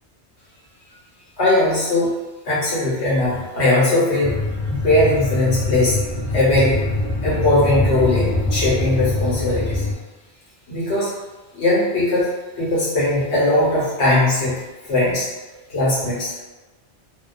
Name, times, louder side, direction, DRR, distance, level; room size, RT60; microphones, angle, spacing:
voice 1, 1.4-2.1 2.4-4.4 4.7-6.0 6.3-6.8 7.2-9.8 10.7-11.1 11.5-12.3 12.6-14.6 14.9-15.3 15.7-16.4, left 2 dB, 80° left, -7 dB, 1.2 m, -19 dB
sound 1, 4.2-9.9, left 2 dB, 50° left, 0.3 m, -24 dB
2.3 x 2.2 x 2.4 m, 1.2 s
omnidirectional pair, 1.1 m